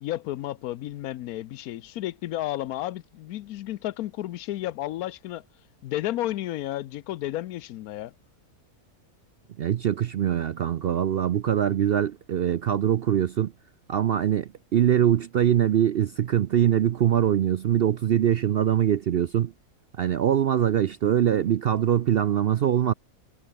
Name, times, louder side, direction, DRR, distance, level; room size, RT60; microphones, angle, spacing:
voice 1, 0.0-5.4 5.8-8.1, left 14 dB, 85° left, 1.1 m, -32 dB
voice 2, 9.6-13.5 13.9-19.5 20.0-22.9, right 10 dB, 65° right, 0.6 m, -23 dB
omnidirectional pair, 1.5 m